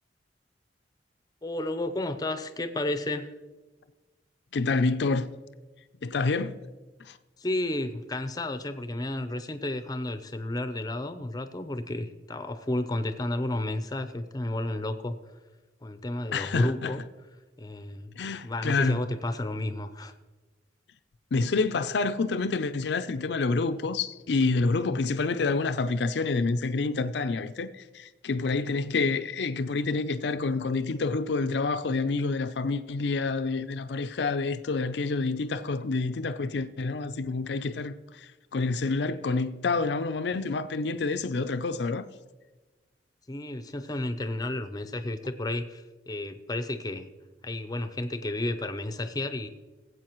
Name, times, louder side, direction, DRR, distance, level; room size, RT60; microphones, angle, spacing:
voice 1, 1.4-3.3 7.4-15.1 15.8-17.0 17.6-18.1 18.4-20.1 43.3-47.1 47.4-49.5, left 1 dB, 20° left, 0.6 m, -32 dB
voice 2, 4.5-5.3 6.0-6.6 7.0-7.2 16.3-16.9 18.2-19.0 21.3-42.0, left 3 dB, 70° left, 0.5 m, -28 dB
18.5 x 8.0 x 3.0 m
head